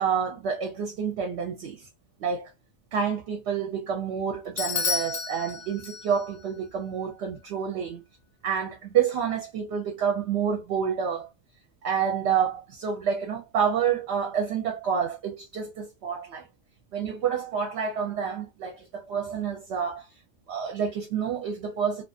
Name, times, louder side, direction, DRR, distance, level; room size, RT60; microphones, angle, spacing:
voice 1, 0.0-1.9 2.2-2.5 2.9-8.0 8.4-11.3 11.8-16.5 16.9-20.1 20.5-22.0, right 7 dB, 65° right, 0.8 m, -28 dB
Bell / Doorbell, 4.6-6.4, left 5 dB, 60° left, 0.7 m, -31 dB
2.4 x 2.3 x 2.4 m
omnidirectional pair, 1.3 m